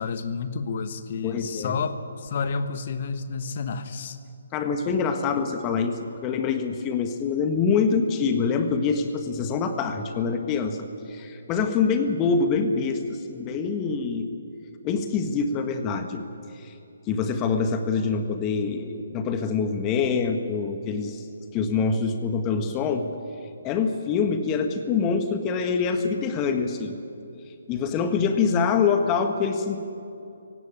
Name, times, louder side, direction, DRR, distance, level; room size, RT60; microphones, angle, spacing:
voice 1, 0.0-4.2, left 5 dB, 45° left, 11 dB, 1.3 m, -30 dB
voice 2, 1.2-1.8 4.5-10.8 11.1-14.3 14.8-16.2 16.5-16.7 17.1-21.2 21.5-23.1 23.6-27.0 27.7-29.8, left 5 dB, 20° left, 6 dB, 1.6 m, -25 dB
17.0 x 16.5 x 9.9 m, 2.7 s
figure-of-eight pair, 140°, 0 cm